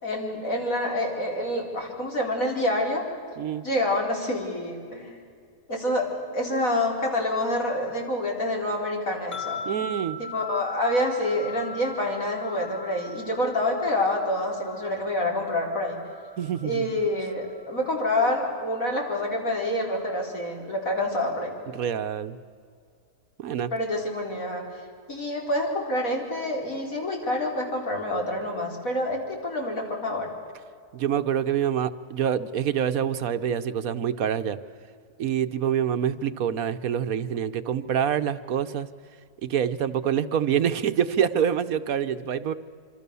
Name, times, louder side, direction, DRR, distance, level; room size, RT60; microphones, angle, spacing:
voice 1, 0.0-3.1 3.6-5.2 5.7-6.1 6.3-9.6 10.2-16.0 16.6-21.5 23.7-24.6 25.1-30.3, left 1 dB, 65° left, 0 dB, 4.8 m, -27 dB
sound 1, 9.3-18.6, left 2 dB, 10° left, 1.8 m, -40 dB
voice 2, 9.7-10.2 16.4-16.9 21.7-22.4 23.4-23.7 30.9-34.6 35.2-38.9 39.4-42.5, right 8 dB, 70° right, 11 dB, 1.3 m, -26 dB
26.0 x 25.5 x 6.9 m, 2.2 s
omnidirectional pair, 1.6 m